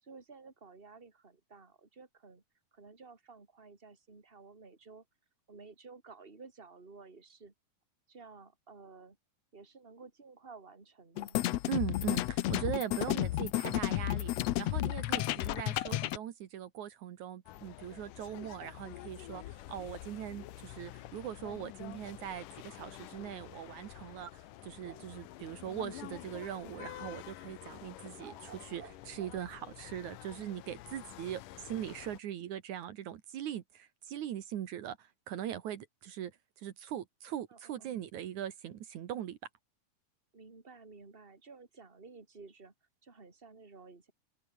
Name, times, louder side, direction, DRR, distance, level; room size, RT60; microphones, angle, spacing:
voice 1, 0.0-2.4 2.7-5.0 5.5-7.5 8.1-9.2 9.5-11.4 37.5-37.9 40.3-42.7 43.0-44.1, right 4 dB, 15° right, 3.1 m, -53 dB
sound 1, 11.2-16.2, left 15 dB, 70° left, 1.7 m, -32 dB
voice 2, 11.7-36.3 36.6-39.4, right 10 dB, 70° right, 2.7 m, -41 dB
sound 2, 17.5-32.2, left 15 dB, 90° left, 2.6 m, -49 dB
sound 3, 24.7-25.2 25.5-25.6 27.9-29.5, right 8 dB, 50° right, 1.3 m, -53 dB
omnidirectional pair, 3.6 m